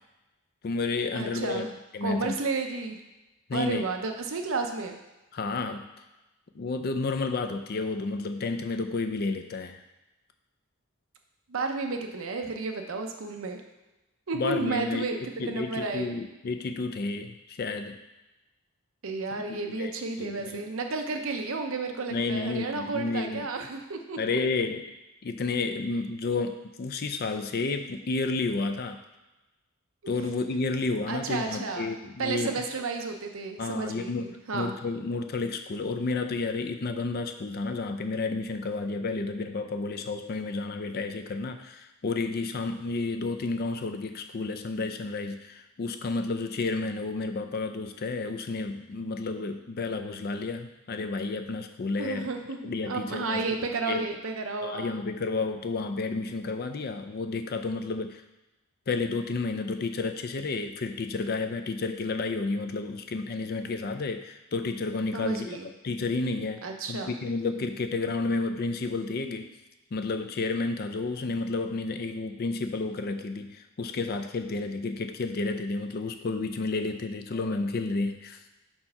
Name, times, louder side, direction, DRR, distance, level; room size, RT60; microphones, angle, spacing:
voice 1, 0.6-1.7 1.9-2.3 3.5-3.9 5.3-5.9 6.5-9.8 14.3-18.0 19.5-19.9 20.2-20.6 22.1-23.5 24.2-24.8 25.2-29.0 30.1-32.5 33.6-52.3 52.6-53.6 53.9-54.0 54.6-58.2 58.9-65.6 65.8-66.6 66.9-69.5 69.9-78.4, left 3 dB, 45° left, 7 dB, 0.4 m, -31 dB
voice 2, 1.1-1.7 2.0-3.0 3.5-5.0 11.5-13.6 14.3-16.1 19.0-24.2 31.1-31.9 32.2-34.7 52.0-55.0 65.1-65.7 66.6-67.1, right 3 dB, 65° right, 4 dB, 0.7 m, -32 dB
4.4 x 4.3 x 5.7 m, 1.0 s
head